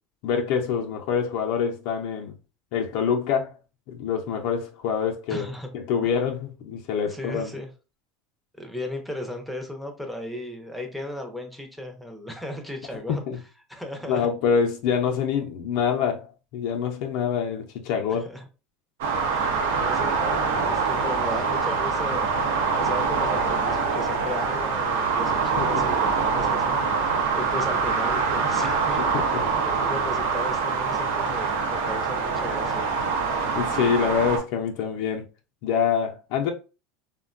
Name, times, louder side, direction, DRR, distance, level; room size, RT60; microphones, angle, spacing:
voice 1, 0.2-2.3 2.7-3.5 3.9-5.5 5.7-7.5 13.1-13.4 14.1-18.3 25.6-25.8 29.1-29.4 33.5-35.2 35.6-36.5, left 7 dB, 60° left, 0.5 m, -26 dB
voice 2, 5.3-5.7 7.0-7.7 8.6-13.2 13.7-14.3 18.1-18.4 19.3-22.3 22.7-32.9, left 1 dB, ahead, 0.6 m, -36 dB
sound 1, 19.0-34.4, right 5 dB, 90° right, 0.6 m, -24 dB
3.5 x 2.1 x 2.4 m
supercardioid pair, 150°, 0 cm